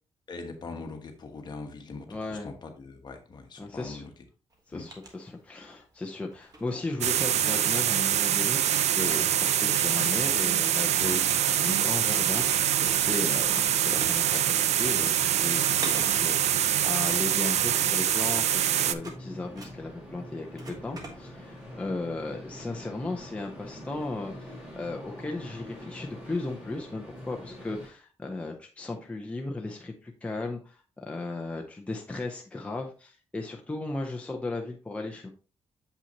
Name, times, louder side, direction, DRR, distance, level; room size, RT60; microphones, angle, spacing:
voice 1, 0.3-4.1 4.7-4.9, left 3 dB, 40° left, 4 dB, 1.2 m, -41 dB
voice 2, 2.1-2.5 3.6-4.0 4.7-12.7 12.9-35.3, left 2 dB, 10° left, 1 dB, 0.6 m, -36 dB
sound 1, 4.5-5.8 6.3-8.0 8.6-8.7 8.9-10.8 11.1-13.0 13.4-21.6, right 2 dB, 35° right, 1.4 m, -45 dB
sound 2, 7.0-18.9, right 10 dB, 75° right, 0.4 m, -25 dB
sound 3, 11.0-27.9, equal, 10° right, 2.2 m, -46 dB
7.1 x 5.6 x 2.9 m, 0.36 s
wide cardioid pair, 170°, 11 cm